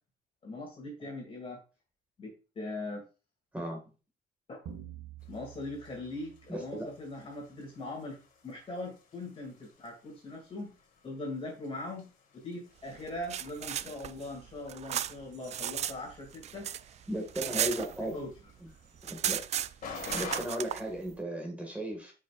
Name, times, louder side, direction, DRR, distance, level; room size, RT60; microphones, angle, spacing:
voice 1, 0.4-1.6 2.2-3.0 4.5-4.6 5.3-8.2 8.4-10.7 11.0-16.7 17.6-18.3, left 2 dB, 35° left, -1 dB, 2.5 m, -41 dB
sound 1, 4.7-7.4, right 9 dB, 80° right, 2.3 m, -49 dB
sound 2, 5.2-20.4, left 5 dB, 50° left, 1.9 m, -51 dB
voice 2, 6.5-6.9 17.1-18.2 19.1-19.4 20.1-22.1, right 1 dB, 10° right, 0 dB, 1.9 m, -35 dB
sound 3, 13.0-16.0 16.3-18.4 18.7-18.8 19.0-20.8, right 10 dB, 40° right, 0.4 m, -34 dB
8.9 x 5.4 x 2.5 m, 0.32 s
cardioid pair, 110°, 17 cm